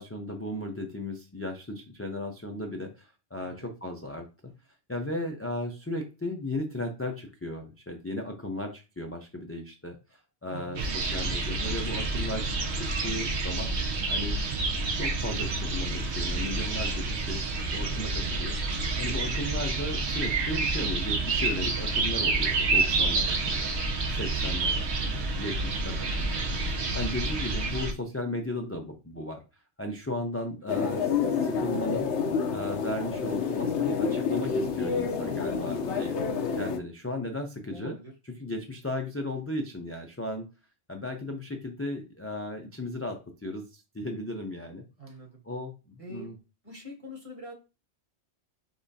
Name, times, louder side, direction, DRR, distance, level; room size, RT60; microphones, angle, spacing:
voice 1, 0.0-4.5 4.9-12.4 12.7-13.7 14.1-14.4 14.9-17.4 17.7-18.6 19.0-23.8 24.1-26.4 26.7-29.4 29.8-32.1 32.5-36.2 36.5-38.0 38.4-40.5 40.9-44.8 45.5-46.4, left 1 dB, 20° left, 2 dB, 0.4 m, -36 dB
voice 2, 3.4-3.7 10.5-10.9 24.3-24.6 30.1-30.4 37.7-38.1 45.0-45.4 46.0-46.3 46.6-47.5, right 2 dB, 30° right, 0 dB, 1.3 m, -44 dB
sound 1, 10.8-27.9, right 3 dB, 70° right, 1.1 m, -28 dB
sound 2, 30.7-36.8, left 6 dB, 80° left, 0.9 m, -28 dB
5.4 x 3.5 x 2.7 m, 0.30 s
omnidirectional pair, 1.2 m